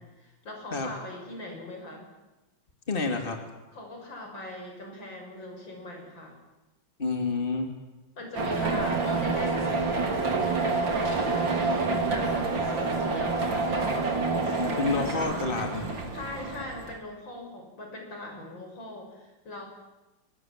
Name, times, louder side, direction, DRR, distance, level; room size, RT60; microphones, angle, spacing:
voice 1, 0.0-2.1 3.7-6.4 8.2-13.7 14.9-15.2 16.1-19.7, left 1 dB, 80° left, 2 dB, 7.4 m, -41 dB
voice 2, 2.9-3.4 7.0-7.7 14.6-15.9, left 3 dB, 30° left, 4 dB, 2.9 m, -29 dB
sound 1, 8.4-17.0, right 3 dB, 80° right, 3.9 m, -28 dB
29.5 x 24.0 x 7.6 m, 1.0 s
omnidirectional pair, 2.0 m